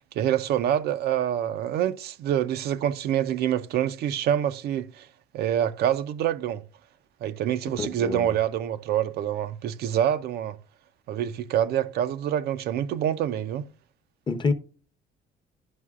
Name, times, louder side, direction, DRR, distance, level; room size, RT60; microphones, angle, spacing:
voice 1, 0.0-5.1 5.3-6.6 7.2-10.6 11.1-13.7, right 10 dB, 70° right, 0.6 m, -26 dB
voice 2, 7.8-8.3 14.3-14.5, left 4 dB, 25° left, 0.8 m, -26 dB
11.0 x 5.4 x 2.4 m
cardioid pair, 110°, 17 cm